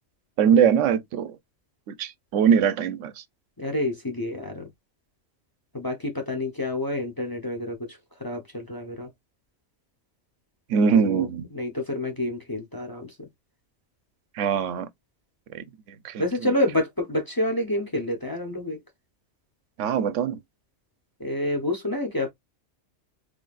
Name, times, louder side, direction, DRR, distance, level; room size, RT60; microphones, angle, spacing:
voice 1, 0.4-1.4 1.9-3.2 10.7-11.4 14.4-14.9 15.5-15.6 16.0-16.2 19.8-20.4, right 7 dB, 85° right, 0.9 m, -22 dB
voice 2, 3.6-4.7 5.7-9.1 10.9-13.3 16.2-18.8 21.2-22.3, left 1 dB, 20° left, 0.7 m, -28 dB
3.9 x 3.2 x 2.4 m
omnidirectional pair, 1.3 m